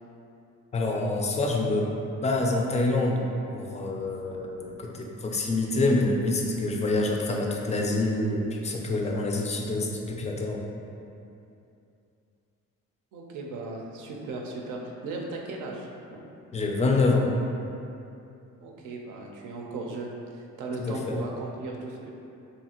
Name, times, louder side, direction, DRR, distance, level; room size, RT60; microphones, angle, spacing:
voice 1, 0.7-1.9 2.2-3.2 3.5-10.7 16.5-17.3 20.8-21.2, left 2 dB, 25° left, 0 dB, 0.3 m, -26 dB
voice 2, 13.1-16.2 18.6-22.1, right 2 dB, 80° right, 0 dB, 0.5 m, -37 dB
2.8 x 2.4 x 2.8 m, 2.7 s
cardioid pair, 90°, 30 cm